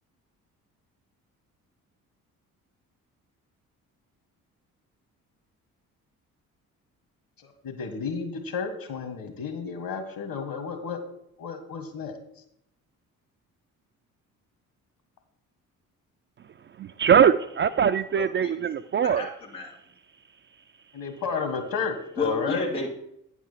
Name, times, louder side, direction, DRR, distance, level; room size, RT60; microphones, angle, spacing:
voice 1, 7.4-11.0 11.4-12.2 20.9-22.6, left 5 dB, 50° left, 7 dB, 1.8 m, -32 dB
voice 2, 16.8-19.3, right 7 dB, 30° right, 11 dB, 0.4 m, -21 dB
voice 3, 18.2-18.5 19.2-19.7 22.2-22.9, left 3 dB, 90° left, -2 dB, 1.6 m, -31 dB
9.1 x 4.8 x 5.7 m, 0.77 s
hypercardioid pair, 45°, 43 cm